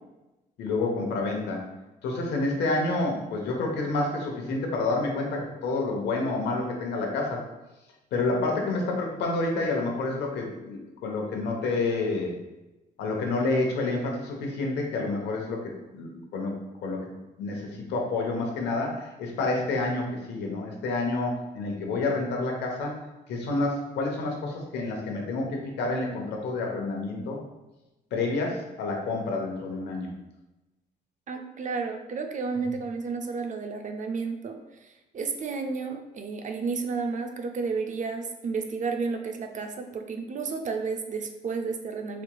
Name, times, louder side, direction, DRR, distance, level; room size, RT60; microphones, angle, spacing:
voice 1, 0.6-1.6 2.0-7.4 8.1-12.3 13.0-16.5 16.8-17.1 17.4-23.0 23.3-27.4 28.1-30.1, left 3 dB, 80° left, 1 dB, 0.8 m, -29 dB
voice 2, 31.3-34.6 35.1-42.2, right 4 dB, 45° right, 5 dB, 0.5 m, -32 dB
4.3 x 2.9 x 2.2 m, 1.0 s
supercardioid pair, 70°, 17 cm